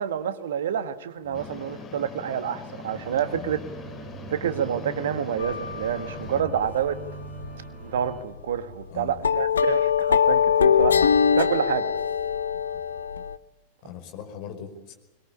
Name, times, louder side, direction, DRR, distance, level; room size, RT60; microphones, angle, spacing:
voice 1, 0.0-3.6 4.3-7.0 7.8-11.0 11.3-11.9, right 8 dB, 60° right, 11 dB, 1.6 m, -28 dB
Commercial Fridge, 1.3-6.4, left 4 dB, 25° left, 2.7 m, -42 dB
sound 1, 2.9-8.2, right 6 dB, 30° right, 4.6 m, -42 dB
sound 2, 5.4-6.3 6.6-6.9 7.2-7.5 7.8-7.9 8.6-8.7 9.2-13.4, left 7 dB, 70° left, 0.9 m, -22 dB
voice 2, 6.3-6.6 8.9-9.3 10.8-11.2 13.8-15.0, left 9 dB, 40° left, 5 dB, 5.2 m, -41 dB
24.0 x 22.0 x 8.6 m, 1.0 s
figure-of-eight pair, 90°, 0 cm